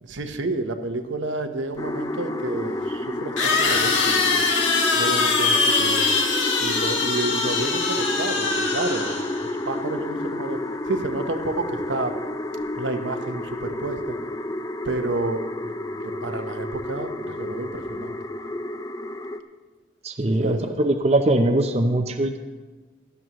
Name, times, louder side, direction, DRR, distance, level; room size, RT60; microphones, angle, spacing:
voice 1, 0.0-4.4 4.9-6.1 6.6-10.6 10.9-12.1 12.7-14.2 14.8-18.2 20.4-20.7, right 2 dB, 80° right, 6 dB, 1.1 m, -30 dB
sound 1, 1.7-1.8 3.4-9.5, left 4 dB, 90° left, 2.0 m, -22 dB
sound 2, 1.8-19.4, left 1 dB, 20° left, 0.4 m, -30 dB
voice 2, 20.0-22.4, right 1 dB, 35° right, 5 dB, 0.6 m, -21 dB
17.5 x 12.5 x 3.1 m, 1.3 s
head